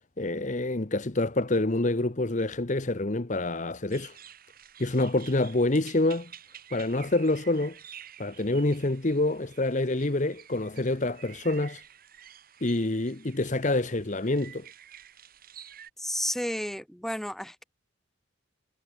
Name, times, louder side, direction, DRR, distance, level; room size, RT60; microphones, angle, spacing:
voice 1, 0.2-4.2 4.8-6.3 6.7-7.8 8.2-11.8 12.6-14.7, left 2 dB, 40° left, 1.0 m, -27 dB
sound 1, 3.9-15.9, right 9 dB, 45° right, 5.4 m, -50 dB
voice 2, 16.0-17.6, equal, ahead, 2.7 m, -32 dB
head